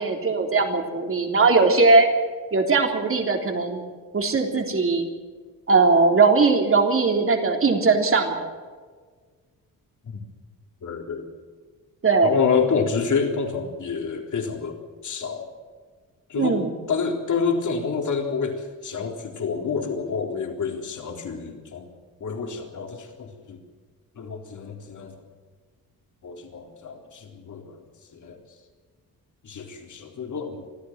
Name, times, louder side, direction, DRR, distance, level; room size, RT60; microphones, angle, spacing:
voice 1, 0.0-2.1 2.5-3.9 4.1-5.1 5.7-8.5 12.0-12.3 16.3-16.7, right 4 dB, 35° right, 3 dB, 3.5 m, -19 dB
voice 2, 10.8-11.3 12.2-14.8 15.0-15.5 16.3-16.6 16.9-21.9 22.2-23.6 24.2-25.2 26.2-27.8 28.1-28.4 29.4-30.6, left 5 dB, 55° left, 3 dB, 3.9 m, -28 dB
24.5 x 14.5 x 7.5 m, 1.5 s
wide cardioid pair, 135°, 36 cm